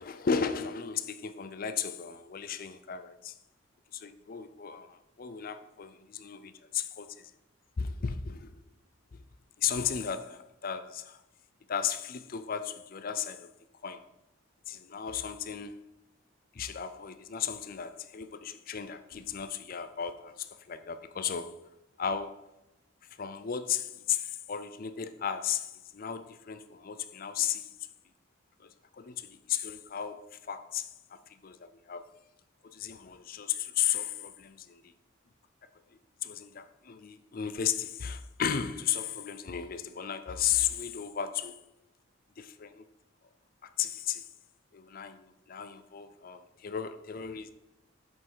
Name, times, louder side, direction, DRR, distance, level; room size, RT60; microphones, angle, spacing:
voice 1, 0.0-3.4 3.9-7.3 7.8-8.6 9.1-9.2 9.6-11.2 11.7-13.5 13.8-14.1 14.7-15.8 16.5-21.5 22.0-22.5 23.2-27.7 28.6-32.1 32.6-34.9 36.2-41.6 42.4-42.8 43.8-44.3 44.7-47.5, left 8 dB, 45° left, 0.5 m, -35 dB
7.7 x 5.3 x 5.6 m
head